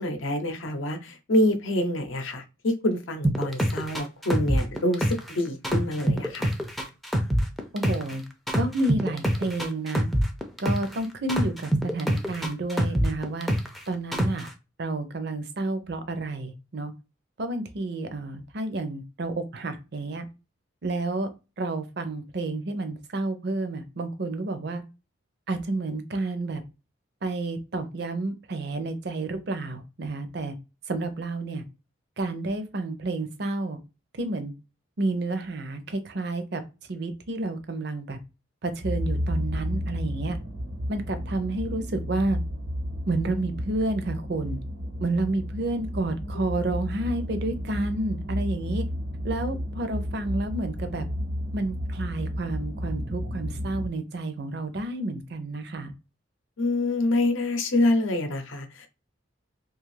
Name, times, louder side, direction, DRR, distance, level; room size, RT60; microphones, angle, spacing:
voice 1, 0.0-6.5 46.3-46.4 56.6-58.9, left 1 dB, 80° left, 7 dB, 0.6 m, -26 dB
sound 1, 3.2-5.3 5.6-8.1 8.5-11.0 11.3-13.8 14.1-14.5, equal, ahead, 0.3 m, -25 dB
voice 2, 7.7-8.2 8.5-10.1 10.6-13.5 13.9-14.5 14.8-16.9 17.4-20.2 20.8-21.3 21.6-24.8 25.5-26.6 27.2-30.5 30.9-31.6 32.2-33.8 34.1-34.5 35.0-36.6 36.9-38.2 38.6-40.4 40.9-42.4 43.1-44.6 45.0-48.9 49.2-51.1 51.5-55.9, right 2 dB, 55° right, 8 dB, 0.5 m, -30 dB
sound 2, 38.8-53.9, equal, 80° right, 1.1 m, -32 dB
2.6 x 2.4 x 3.1 m, 0.28 s
head